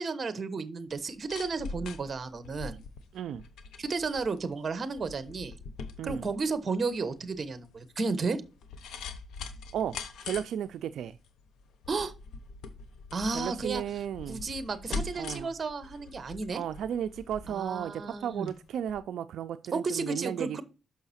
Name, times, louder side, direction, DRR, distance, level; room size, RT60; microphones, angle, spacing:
voice 1, 0.0-2.8 3.8-5.5 6.0-8.4 11.9-12.1 13.1-13.8 14.3-16.6 17.5-18.5 19.7-20.6, right 4 dB, 35° right, 1.0 m, -33 dB
sound 1, 0.9-18.6 18.9-19.0, left 4 dB, 85° left, 0.8 m, -43 dB
voice 2, 3.1-3.4 6.0-6.3 9.7-11.2 13.3-14.4 15.1-15.5 16.5-20.6, right 9 dB, 80° right, 0.3 m, -34 dB
6.3 x 5.6 x 4.1 m
cardioid pair, 110°, 0 cm